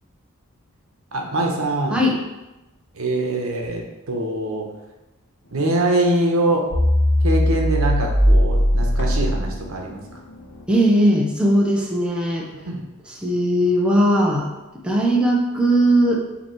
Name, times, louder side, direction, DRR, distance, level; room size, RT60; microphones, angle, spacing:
voice 1, 1.1-2.0 2.9-4.7 5.5-6.6 7.2-10.0 12.7-12.8, right 2 dB, 75° right, 1 dB, 1.1 m, -23 dB
sound 1, 6.7-9.9, equal, 60° left, 1.0 m, -18 dB
voice 2, 10.7-12.5 13.1-14.5 14.8-16.2, right 1 dB, 5° right, -2 dB, 0.8 m, -18 dB
7.1 x 3.0 x 4.5 m, 1.0 s
head